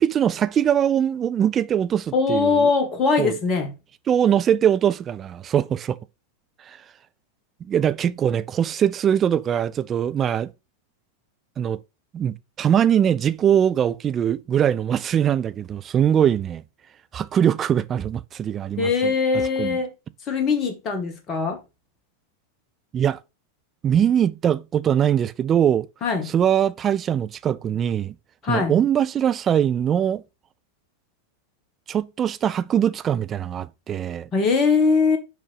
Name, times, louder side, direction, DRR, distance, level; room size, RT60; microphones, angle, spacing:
voice 1, 0.0-2.7 3.2-3.4 4.1-6.0 6.7-6.8 7.6-10.5 11.6-11.8 12.1-16.6 17.1-19.1 19.6-19.8 22.9-23.2 23.8-25.9 26.3-28.2 28.5-30.2 31.9-34.3, right 9 dB, 25° right, 0.5 m, -22 dB
voice 2, 2.1-3.7 18.8-19.9 20.3-21.6 26.0-26.3 28.4-28.7 34.3-35.2, left 4 dB, 30° left, 2.1 m, -21 dB
6.3 x 5.1 x 5.8 m
figure-of-eight pair, 90°, 0 cm